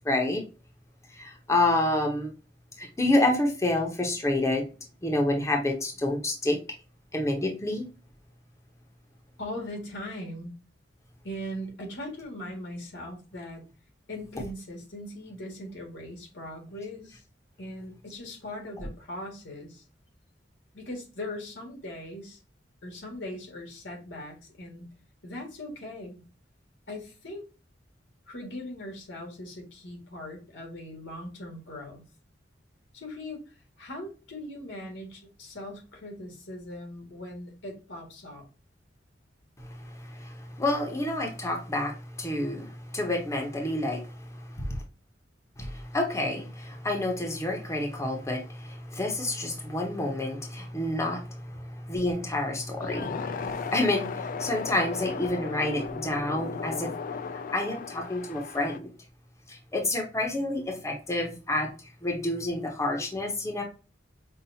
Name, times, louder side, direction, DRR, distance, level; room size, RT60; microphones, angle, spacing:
voice 1, 0.0-0.4 1.1-2.3 2.8-4.6 5.0-6.6 7.1-7.9 39.6-44.8 45.6-56.9 57.5-58.9 59.5-61.7 62.0-63.6, left 1 dB, 15° left, 2 dB, 0.8 m, -29 dB
voice 2, 9.4-10.5 11.2-13.6 14.1-17.2 17.6-19.8 20.7-22.4 22.8-24.9 25.2-26.2 26.9-27.5 28.3-32.0 32.9-33.4 33.8-38.4, left 1 dB, 85° left, 1 dB, 1.7 m, -40 dB
sound 1, 52.8-58.8, left 5 dB, 50° left, 0.3 m, -36 dB
5.5 x 2.4 x 2.7 m, 0.33 s
head